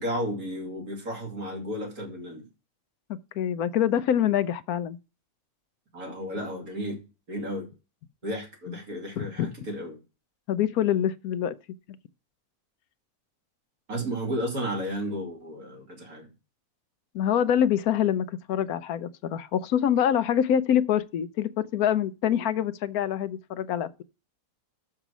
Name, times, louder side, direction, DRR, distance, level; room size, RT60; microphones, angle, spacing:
voice 1, 0.0-2.5 5.9-7.0 7.3-7.7 8.2-10.0 13.9-16.3, equal, 65° right, 3.0 m, -33 dB
voice 2, 3.1-5.0 9.2-9.5 10.5-11.5 17.1-24.0, left 9 dB, 75° left, 1.1 m, -25 dB
6.6 x 6.0 x 6.1 m
omnidirectional pair, 1.6 m